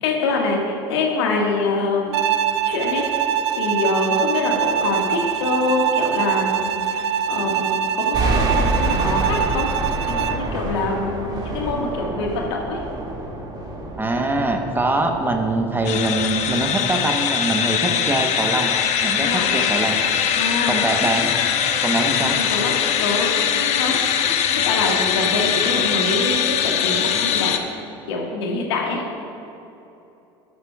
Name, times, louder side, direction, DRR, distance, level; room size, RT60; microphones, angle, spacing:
voice 1, 0.0-2.2 2.6-3.1 3.6-9.7 10.0-12.8 19.2-19.5 20.4-20.8 22.1-22.7 23.0-24.4 24.6-27.5 28.1-29.0, left 3 dB, 80° left, -1 dB, 1.8 m, -25 dB
Bowed string instrument, 2.1-10.5, right 9 dB, 90° right, 0.4 m, -23 dB
sound 1, 8.1-16.7, right 2 dB, 30° right, 2.3 m, -27 dB
voice 2, 14.0-18.7 19.0-20.0 20.7-21.3 21.8-22.4, right 2 dB, 15° right, 4 dB, 1.1 m, -23 dB
sound 2, 15.8-27.6, left 8 dB, 55° left, 0.9 m, -21 dB
12.5 x 12.0 x 2.4 m, 2.9 s
hypercardioid pair, 80°, 14 cm